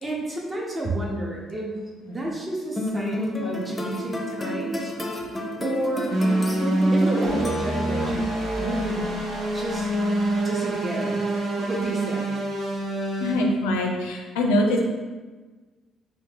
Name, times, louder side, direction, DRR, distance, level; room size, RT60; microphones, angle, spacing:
voice 1, 0.0-4.9 5.6-6.1 6.9-9.1 9.5-9.9 10.2-11.2 11.5-12.3, right 1 dB, 25° right, -2 dB, 0.9 m, -31 dB
sound 1, 2.8-8.1, left 1 dB, 20° left, 0.6 m, -30 dB
sound 2, 6.1-13.3, right 1 dB, 65° right, 1.0 m, -25 dB
voice 2, 13.2-14.8, left 1 dB, 75° left, 1 dB, 0.4 m, -23 dB
3.2 x 2.5 x 3.3 m, 1.3 s
figure-of-eight pair, 45°, 0 cm